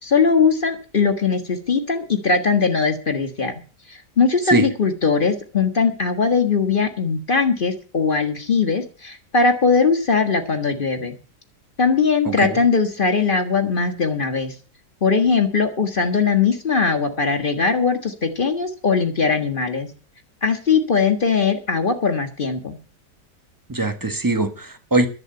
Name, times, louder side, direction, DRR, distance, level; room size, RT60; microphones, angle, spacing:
voice 1, 0.0-3.5 4.2-11.2 11.8-14.5 15.0-19.9 20.4-22.8, left 5 dB, 30° left, 1.7 m, -20 dB
voice 2, 12.2-12.6 23.7-25.1, right 2 dB, 15° right, 1.3 m, -21 dB
11.0 x 8.1 x 9.1 m
omnidirectional pair, 1.8 m